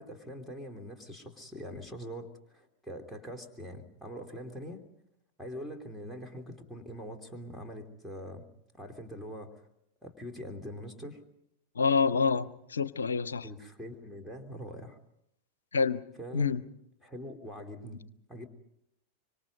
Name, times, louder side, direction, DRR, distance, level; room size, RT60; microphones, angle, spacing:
voice 1, 0.0-4.8 5.4-8.4 8.7-9.7 10.0-11.2 13.4-15.0 16.2-16.6 17.0-18.0 18.3-18.5, equal, ahead, 2 dB, 3.1 m, -43 dB
voice 2, 11.7-13.5 15.7-16.0 16.3-16.6, left 5 dB, 70° left, 17 dB, 0.8 m, -27 dB
25.5 x 25.0 x 5.3 m, 0.77 s
figure-of-eight pair, 90°, 0 cm